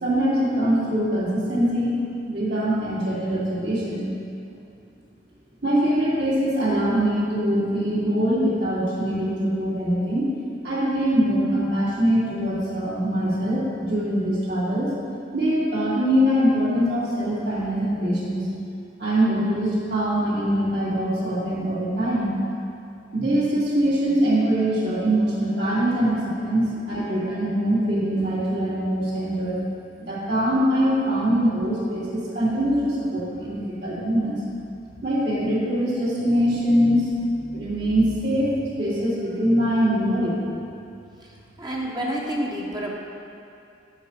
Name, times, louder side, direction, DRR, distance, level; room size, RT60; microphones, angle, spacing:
voice 1, 0.0-2.0 2.2-4.1 5.6-10.3 10.6-14.9 15.3-18.5 19.0-22.3 23.1-29.6 30.0-34.4 35.0-38.5 38.8-40.4, equal, 65° right, -8 dB, 2.3 m, -23 dB
voice 2, 41.6-42.9, right 1 dB, 25° right, -3 dB, 0.9 m, -28 dB
8.1 x 5.0 x 7.1 m, 2.5 s
head